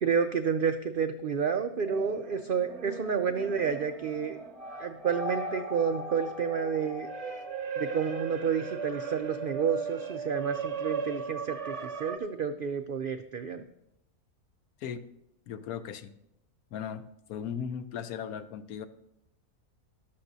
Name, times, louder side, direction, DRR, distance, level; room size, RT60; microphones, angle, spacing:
voice 1, 0.0-4.4 4.8-7.1 7.8-13.6, right 6 dB, 80° right, 8 dB, 0.4 m, -30 dB
sound 1, 1.8-12.2, right 4 dB, 30° right, 0.7 m, -37 dB
voice 2, 15.5-16.1 16.7-18.9, left 8 dB, 80° left, 11 dB, 1.1 m, -37 dB
14.0 x 12.0 x 2.7 m, 0.81 s
omnidirectional pair, 1.5 m